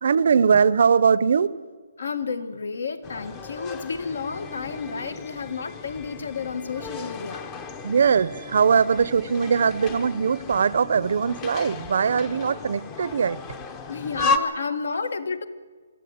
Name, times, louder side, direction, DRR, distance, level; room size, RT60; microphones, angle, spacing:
voice 1, 0.0-1.5 7.0-7.1 7.8-13.4, right 6 dB, 50° right, 18 dB, 0.7 m, -21 dB
voice 2, 2.0-7.5 12.3-12.4 13.9-15.5, left 5 dB, 65° left, 11 dB, 1.6 m, -31 dB
sound 1, 3.0-14.4, left 4 dB, 15° left, 0.8 m, -34 dB
24.5 x 13.5 x 9.5 m, 1.5 s
hypercardioid pair, 175°, 0 cm